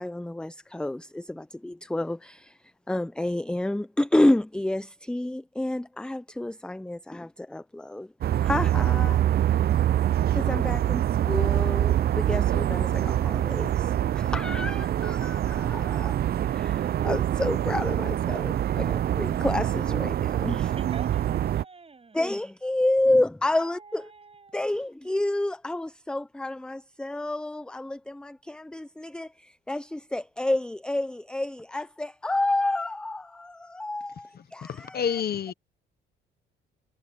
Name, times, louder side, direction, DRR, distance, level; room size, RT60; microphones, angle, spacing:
voice 1, 0.0-8.1 8.4-9.6 10.3-16.2 16.4-20.7 22.1-24.0 24.5-35.0, left 1 dB, 5° left, 0.6 m, -29 dB
sound 1, 8.2-21.6, right 11 dB, 50° right, 0.5 m, -25 dB
voice 2, 20.7-22.5 23.5-24.8, right 4 dB, 30° right, 7.3 m, -48 dB
voice 3, 34.3-35.5, left 8 dB, 50° left, 1.1 m, -30 dB
cardioid pair, 90°, 20 cm